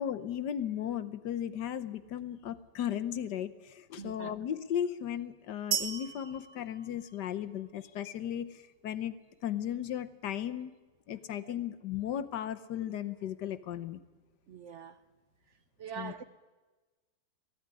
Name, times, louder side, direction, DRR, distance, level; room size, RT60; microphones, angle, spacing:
voice 1, 0.0-9.1 9.4-10.7 11.1-14.0 16.0-16.1, left 10 dB, 65° left, 1.4 m, -36 dB
voice 2, 4.0-4.3 11.4-11.5 14.5-15.0 15.8-16.2, right 7 dB, 60° right, 0.7 m, -43 dB
sound 1, 5.7-7.7, right 9 dB, 80° right, 2.0 m, -36 dB
18.5 x 14.5 x 9.7 m
omnidirectional pair, 2.1 m